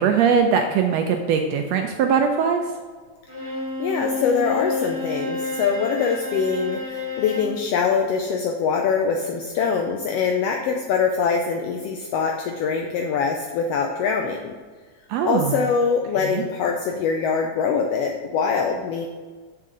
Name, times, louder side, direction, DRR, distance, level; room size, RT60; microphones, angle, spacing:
voice 1, 0.0-2.6 15.1-15.5 16.3-16.4, right 6 dB, 80° right, 5 dB, 1.6 m, -20 dB
Bowed string instrument, 3.3-7.6, left 3 dB, 10° right, 1.4 m, -29 dB
voice 2, 3.8-14.5 15.2-19.1, left 5 dB, 85° left, 2 dB, 1.4 m, -23 dB
7.4 x 6.5 x 3.8 m, 1.5 s
omnidirectional pair, 3.4 m